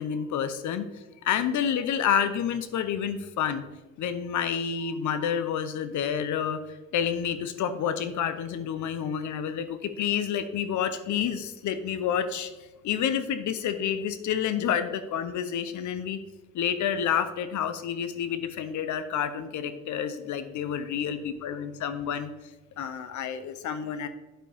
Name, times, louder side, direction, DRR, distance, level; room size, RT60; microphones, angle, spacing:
voice 1, 0.0-3.6 4.0-12.5 12.8-16.2 16.5-22.3 22.8-24.1, left 8 dB, 75° left, 11 dB, 0.8 m, -29 dB
8.9 x 7.1 x 3.5 m, 1.1 s
cardioid pair, 90°, 30 cm